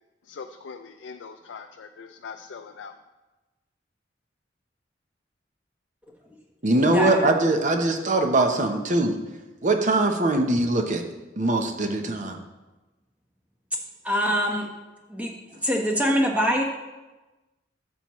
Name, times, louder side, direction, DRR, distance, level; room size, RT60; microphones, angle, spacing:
voice 1, 0.3-2.9, left 5 dB, 80° left, 6 dB, 0.4 m, -41 dB
voice 2, 6.6-9.2 9.6-11.0 11.4-12.4, right 2 dB, 45° right, 5 dB, 0.9 m, -22 dB
voice 3, 14.0-14.7 15.1-15.3 15.6-16.6, equal, 10° right, 0 dB, 1.2 m, -23 dB
12.0 x 7.2 x 3.1 m, 1.1 s
head